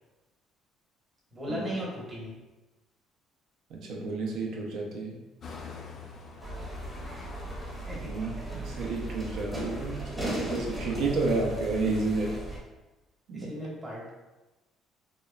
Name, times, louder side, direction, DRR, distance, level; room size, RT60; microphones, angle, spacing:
voice 1, 1.3-2.3 7.4-7.6 7.9-8.0 8.4-8.8 13.3-14.1, equal, 20° right, -5 dB, 1.0 m, -37 dB
voice 2, 3.7-5.2 8.0-12.3 13.3-13.5, right 3 dB, 70° right, -1 dB, 0.5 m, -31 dB
sound 1, 5.4-11.7, left 4 dB, 45° left, 0.3 m, -48 dB
sound 2, 6.4-12.6, right 1 dB, ahead, 0.6 m, -37 dB
2.9 x 2.1 x 2.3 m, 1.1 s
cardioid pair, 115°, 0 cm